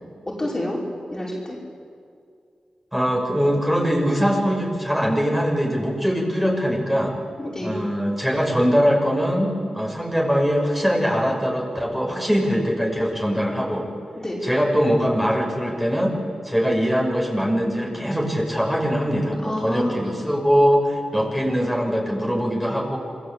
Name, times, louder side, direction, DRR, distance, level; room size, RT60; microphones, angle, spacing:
voice 1, 0.3-0.8 1.1-1.6 7.4-7.8 14.1-14.4 19.4-20.0, left 1 dB, 25° left, -3 dB, 5.8 m, -29 dB
voice 2, 2.9-7.2 7.6-13.9 14.4-16.1 16.4-23.0, equal, 5° right, -1 dB, 6.4 m, -22 dB
28.0 x 21.0 x 8.4 m, 2.4 s
cardioid pair, 65°, 2 cm